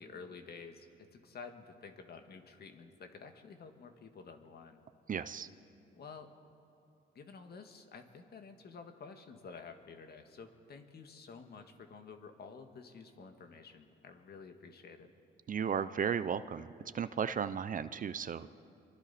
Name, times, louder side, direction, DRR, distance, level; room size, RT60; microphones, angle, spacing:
voice 1, 0.0-4.8 5.9-6.3 7.2-15.1, left 5 dB, 55° left, 6 dB, 1.8 m, -51 dB
voice 2, 5.1-5.5 15.5-18.5, right 7 dB, 45° right, 13 dB, 0.7 m, -35 dB
28.0 x 23.5 x 4.3 m, 2.6 s
cardioid pair, 90°, 20 cm